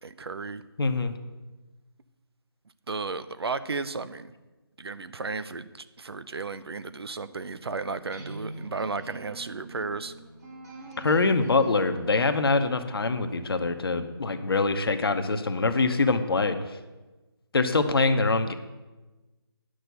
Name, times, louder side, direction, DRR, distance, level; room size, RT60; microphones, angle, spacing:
voice 1, 0.0-0.6 2.9-4.3 4.8-10.1, right 4 dB, 70° right, 13 dB, 0.7 m, -34 dB
voice 2, 0.8-1.1 11.0-16.6 17.5-18.5, left 3 dB, 65° left, 8 dB, 1.0 m, -24 dB
sound 1, 8.0-14.0, right 2 dB, 40° right, 2.3 m, -45 dB
9.9 x 6.4 x 6.8 m, 1.2 s
figure-of-eight pair, 160°, 14 cm